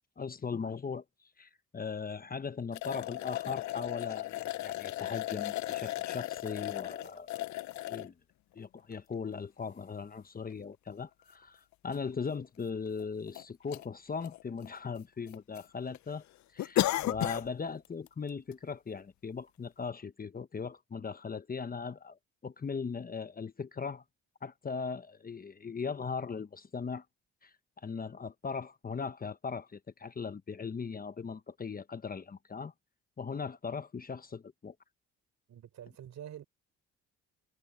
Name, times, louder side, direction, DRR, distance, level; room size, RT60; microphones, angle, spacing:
voice 1, 0.2-1.0 1.4-7.4 7.9-8.1 8.5-16.2 16.5-24.0 24.4-27.0 27.4-32.7 33.2-34.7, left 5 dB, 30° left, 1.0 m, -39 dB
sound 1, 2.7-8.1 8.8-8.9 10.5-10.6 10.9-11.0 11.9-12.0 12.3-12.4 13.0-13.4 13.7-13.9 14.2-15.0 15.3-15.6 15.9-16.0 16.6-17.5 17.8-18.1 18.5-18.6, left 15 dB, 70° left, 0.6 m, -35 dB
voice 2, 35.5-36.5, right 10 dB, 70° right, 5.9 m, -46 dB
cardioid pair, 90°, 30 cm